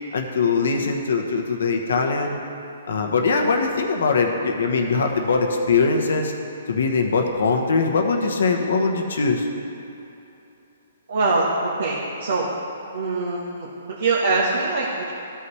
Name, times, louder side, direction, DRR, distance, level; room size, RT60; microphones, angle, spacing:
voice 1, 0.1-2.4 2.9-6.3 6.7-9.5, left 4 dB, 75° left, 3 dB, 1.0 m, -21 dB
voice 2, 11.1-12.5 12.9-15.1, right 3 dB, 70° right, -5 dB, 1.2 m, -23 dB
12.5 x 5.7 x 3.2 m, 2.9 s
hypercardioid pair, 140°, 0 cm